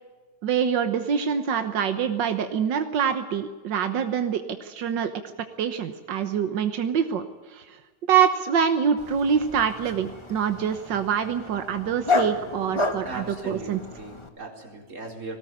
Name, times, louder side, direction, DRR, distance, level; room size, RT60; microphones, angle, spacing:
voice 1, 0.4-5.1 5.6-7.2 7.5-7.6 8.1-13.8, right 7 dB, 90° right, 8 dB, 1.8 m, -25 dB
Dog, 9.0-14.3, left 3 dB, 15° left, 1.6 m, -31 dB
voice 2, 13.0-15.4, right 3 dB, 45° right, 1 dB, 4.7 m, -38 dB
20.0 x 17.5 x 9.2 m, 1.3 s
omnidirectional pair, 1.9 m